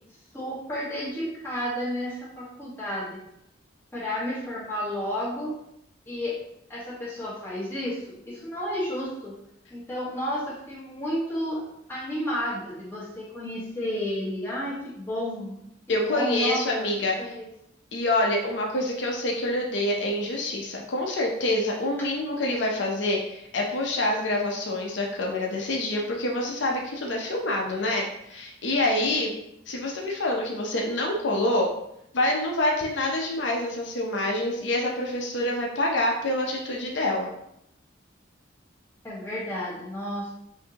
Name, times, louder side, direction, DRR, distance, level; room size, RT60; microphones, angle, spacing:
voice 1, 0.3-3.2 3.9-5.5 6.1-6.4 6.7-9.4 9.7-11.6 11.9-15.6 16.1-16.9 17.2-17.5 39.0-40.3, equal, 10° left, -8 dB, 1.5 m, -31 dB
voice 2, 15.9-17.4 17.9-29.3 29.7-31.7 32.1-37.3, left 1 dB, 65° left, -1 dB, 0.6 m, -26 dB
5.7 x 2.7 x 2.9 m, 0.79 s
head